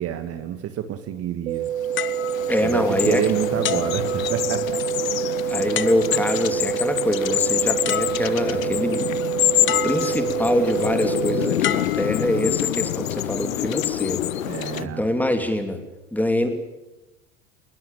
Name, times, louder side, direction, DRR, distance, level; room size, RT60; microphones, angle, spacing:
voice 1, 0.0-1.7 2.6-4.8 14.4-15.0, right 10 dB, 35° right, 9 dB, 1.7 m, -28 dB
sound 1, 1.5-11.5, right 11 dB, 65° right, 1.5 m, -27 dB
sound 2, 1.7-14.9, left 13 dB, 75° left, 0.7 m, -27 dB
sound 3, 2.0-3.2 3.6-4.8 5.7-6.4 7.5-7.6 7.8-8.7 9.7-10.5 11.6-12.7 13.4-13.7, left 11 dB, 30° left, 1.2 m, -31 dB
voice 2, 2.5-3.2 5.5-9.1 9.6-14.2 14.8-15.8 16.1-16.5, left 1 dB, 5° left, 7 dB, 3.0 m, -24 dB
21.5 x 20.0 x 9.1 m, 1.0 s
figure-of-eight pair, 85°, 41 cm